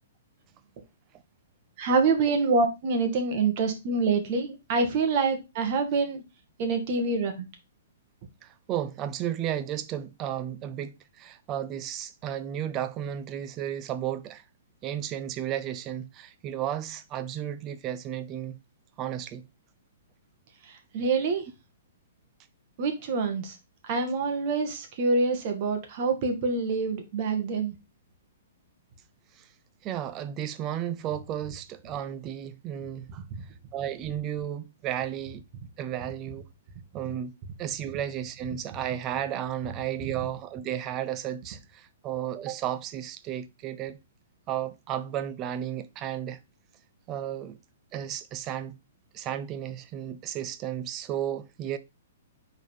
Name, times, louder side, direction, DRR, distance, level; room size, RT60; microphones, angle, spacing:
voice 1, 1.8-6.2 6.6-7.3 20.9-21.4 22.8-23.5 23.8-27.7, right 4 dB, 45° right, 1.7 m, -26 dB
voice 2, 8.4-14.4 14.8-18.6 19.0-19.4 29.8-33.2 33.7-35.4 35.8-36.4 36.9-37.3 37.6-44.0 44.5-46.4 47.1-47.6 47.9-48.8 49.1-51.8, right 10 dB, 25° right, 0.6 m, -33 dB
5.0 x 4.0 x 5.3 m
hypercardioid pair, 145°, 0 cm